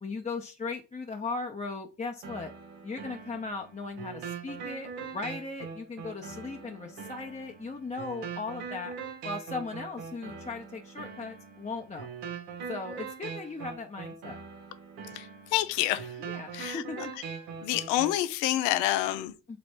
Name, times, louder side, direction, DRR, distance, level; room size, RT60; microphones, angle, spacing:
voice 1, 0.0-2.5 2.8-8.9 9.2-12.1 12.7-14.4 16.2-17.0 19.5-19.6, left 3 dB, 15° left, 0.6 m, -37 dB
sound 1, 2.2-18.2, right 6 dB, 90° right, 1.0 m, -42 dB
voice 2, 15.1-16.1 16.5-17.1 17.6-19.6, left 14 dB, 85° left, 0.6 m, -28 dB
3.1 x 3.0 x 4.4 m
hypercardioid pair, 55°, 48 cm